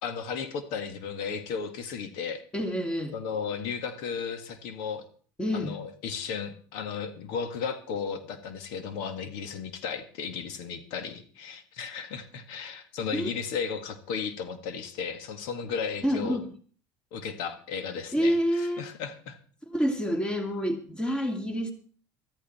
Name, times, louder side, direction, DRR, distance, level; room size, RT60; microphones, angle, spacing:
voice 1, 0.0-2.4 3.1-5.0 5.5-16.4 17.1-19.4, left 6 dB, 80° left, 9 dB, 2.0 m, -35 dB
voice 2, 2.5-3.1 5.4-5.8 13.1-13.3 16.0-16.5 18.1-18.8 19.7-21.7, equal, 10° left, 5 dB, 2.5 m, -27 dB
15.0 x 13.5 x 4.4 m, 0.42 s
cardioid pair, 140°, 8 cm